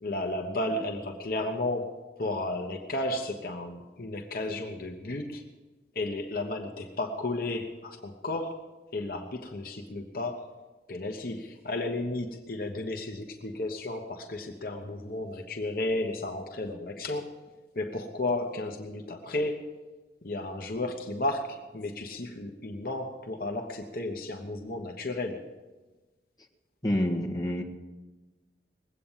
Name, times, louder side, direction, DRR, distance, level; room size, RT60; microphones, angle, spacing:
voice 1, 0.0-5.4 5.9-10.5 10.9-17.4 17.7-19.7 20.2-25.5, left 2 dB, 50° left, 3 dB, 1.1 m, -33 dB
voice 2, 26.8-27.6, left 1 dB, 20° left, -1 dB, 1.6 m, -27 dB
20.5 x 8.5 x 7.3 m, 1.2 s
head